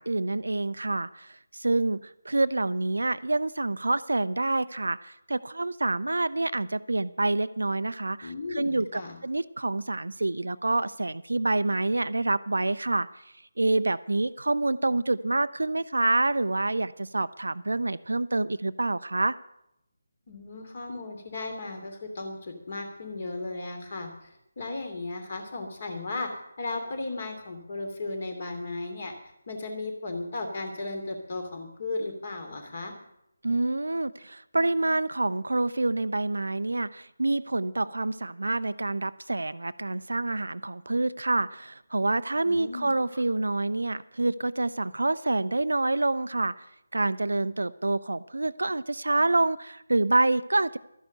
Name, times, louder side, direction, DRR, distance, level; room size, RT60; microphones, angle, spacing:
voice 1, 0.0-2.0 2.2-13.1 13.6-19.4 33.4-46.6 46.9-50.8, right 2 dB, 65° right, 15 dB, 0.5 m, -27 dB
voice 2, 8.2-9.2 20.3-26.3 26.6-29.1 29.5-32.9 42.4-42.9, left 2 dB, 40° left, 5 dB, 2.8 m, -35 dB
13.0 x 10.5 x 6.5 m, 0.80 s
figure-of-eight pair, 155°, 0 cm